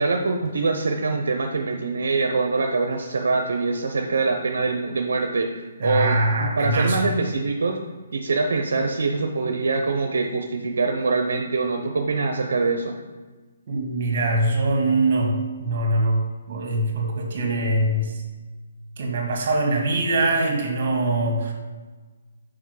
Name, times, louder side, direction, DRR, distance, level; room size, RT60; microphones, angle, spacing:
voice 1, 0.0-5.5 5.8-7.8 8.1-13.0, right 3 dB, 80° right, 4 dB, 0.6 m, -24 dB
voice 2, 5.8-7.1 13.7-18.2 19.0-21.5, right 2 dB, 45° right, 1 dB, 1.7 m, -23 dB
5.8 x 4.8 x 4.8 m, 1.3 s
hypercardioid pair, 165°, 0 cm